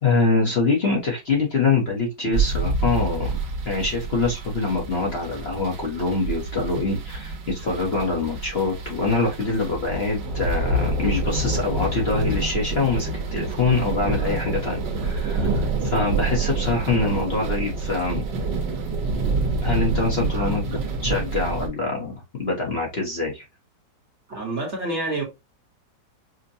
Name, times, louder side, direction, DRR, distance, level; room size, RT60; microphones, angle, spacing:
voice 1, 0.0-3.4 3.6-18.2 19.6-20.8 21.0-23.4, left 3 dB, 45° left, 1.0 m, -24 dB
sound 1, 2.3-21.7, right 3 dB, 85° right, 1.5 m, -27 dB
voice 2, 20.3-20.9 24.3-25.2, right 2 dB, 45° right, 1.1 m, -29 dB
5.3 x 2.1 x 2.6 m
omnidirectional pair, 1.9 m